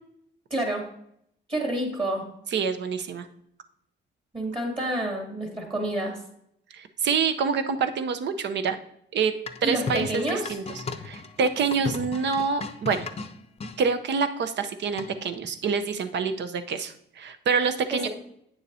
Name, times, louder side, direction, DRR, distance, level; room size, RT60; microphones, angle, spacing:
voice 1, 0.5-0.9 1.5-2.3 4.3-6.2 9.6-10.6 17.9-18.1, right 1 dB, 25° right, 0 dB, 2.5 m, -28 dB
voice 2, 2.5-3.3 6.7-8.8 9.1-9.3 9.6-10.6 11.0-13.1 13.8-18.1, right 5 dB, 60° right, 9 dB, 0.8 m, -26 dB
sound 1, 9.5-13.8 15.0-15.4, left 4 dB, 30° left, 0.6 m, -36 dB
9.0 x 7.0 x 2.7 m, 0.72 s
cardioid pair, 90°, 20 cm